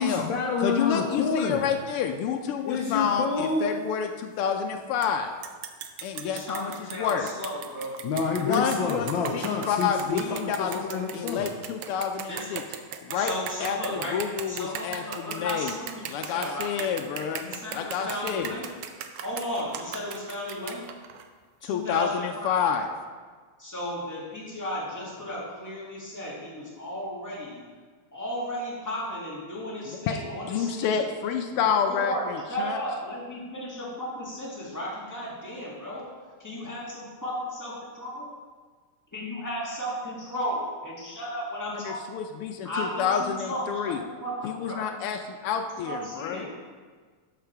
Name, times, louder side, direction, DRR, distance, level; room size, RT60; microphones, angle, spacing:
voice 1, 0.0-1.7 2.6-3.7 8.0-11.5, left 5 dB, 70° left, 1 dB, 1.4 m, -28 dB
voice 2, 0.6-5.3 6.0-7.3 8.4-10.8 11.1-12.6 13.0-13.3 13.6-15.7 16.1-17.5 17.7-18.5 21.6-22.9 29.9-30.2 30.5-32.8 41.7-44.0 44.4-46.4, left 7 dB, 85° left, 4 dB, 1.6 m, -29 dB
sound 1, 5.0-5.1 5.4-21.3, right 9 dB, 90° right, 1.6 m, -38 dB
voice 3, 6.2-8.0 12.3-12.5 13.1-14.2 14.5-16.9 17.4-18.7 19.2-20.8 21.6-22.8 23.6-27.6 28.1-31.1 31.6-36.0 36.4-38.3 39.1-42.0 42.6-44.9 45.8-46.5, equal, 10° left, -6 dB, 1.9 m, -34 dB
12.0 x 4.8 x 4.6 m, 1.5 s
omnidirectional pair, 2.4 m